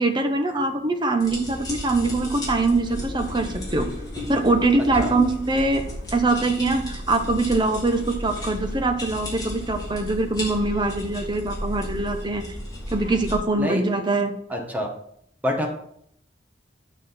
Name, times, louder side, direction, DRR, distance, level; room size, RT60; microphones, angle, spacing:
voice 1, 0.0-3.9 4.3-5.8 6.1-12.4 12.9-14.3, right 2 dB, 25° right, 5 dB, 1.0 m, -23 dB
sound 1, 1.2-13.3, left 1 dB, 25° left, 3.4 m, -34 dB
voice 2, 14.5-14.9 15.4-15.7, equal, 10° right, 1 dB, 1.5 m, -26 dB
9.7 x 6.0 x 4.3 m, 0.69 s
head